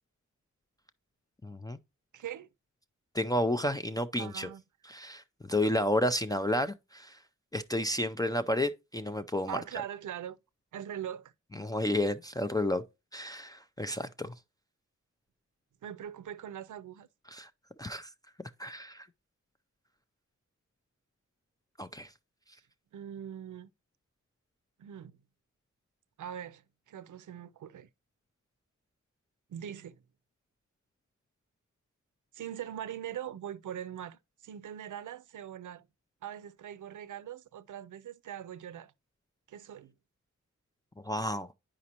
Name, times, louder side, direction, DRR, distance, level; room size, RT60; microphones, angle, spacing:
voice 1, 1.4-1.8 3.1-4.5 4.9-7.2 7.5-9.6 11.6-12.8 13.1-14.3 17.3-17.5 17.8-18.1 18.6-19.1 21.8-22.1 41.0-41.5, left 1 dB, 15° left, 0.3 m, -31 dB
voice 2, 2.1-2.5 4.2-4.6 9.5-10.4 10.7-11.3 15.8-17.1 22.9-23.7 24.8-25.2 26.2-27.9 29.5-30.0 32.3-35.9 36.2-38.9 39.5-39.9, right 10 dB, 80° right, 0.5 m, -42 dB
9.5 x 5.1 x 2.8 m
wide cardioid pair, 105°, 30 cm